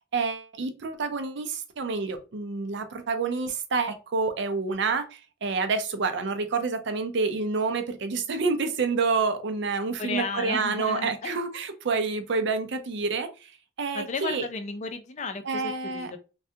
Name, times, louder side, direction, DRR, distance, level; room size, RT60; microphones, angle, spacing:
voice 1, 0.1-13.5 13.8-14.5 15.5-16.1, right 4 dB, 60° right, 0.5 m, -28 dB
voice 2, 10.0-11.4 13.9-16.2, left 4 dB, 35° left, 0.4 m, -34 dB
3.3 x 2.2 x 2.7 m
head